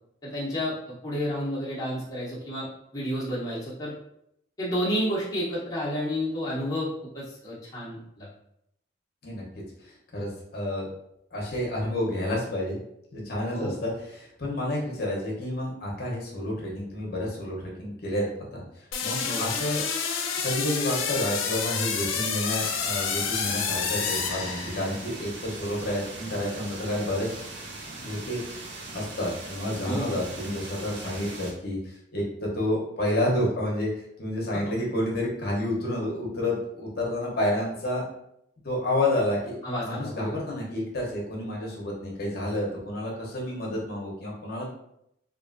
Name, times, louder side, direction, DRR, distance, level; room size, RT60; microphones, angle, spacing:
voice 1, 0.2-3.9 4.6-8.3 13.5-13.8 19.3-19.5 29.8-30.1 34.7-34.8 39.6-40.4, equal, 20° left, -8 dB, 0.7 m, -31 dB
voice 2, 9.8-10.9 11.3-12.8 13.1-19.8 20.4-27.4 28.0-28.4 28.9-38.0 38.6-39.6 39.8-44.7, left 1 dB, 50° left, -3 dB, 0.7 m, -30 dB
sound 1, 18.9-25.1, left 6 dB, 80° left, 0.4 m, -29 dB
sound 2, 22.6-31.5, right 2 dB, 65° right, 0.7 m, -40 dB
3.0 x 2.5 x 2.5 m, 0.77 s
head